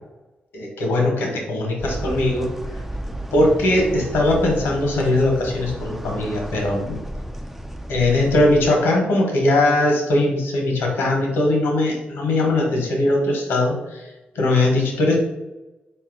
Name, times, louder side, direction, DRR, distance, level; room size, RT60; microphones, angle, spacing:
voice 1, 0.5-2.5 3.3-7.0 7.9-15.1, left 2 dB, 90° left, 0 dB, 1.1 m, -20 dB
sound 1, 1.8-8.7, equal, 5° right, 0.3 m, -33 dB
4.3 x 2.7 x 3.8 m, 1.0 s
cardioid pair, 75°, 4 cm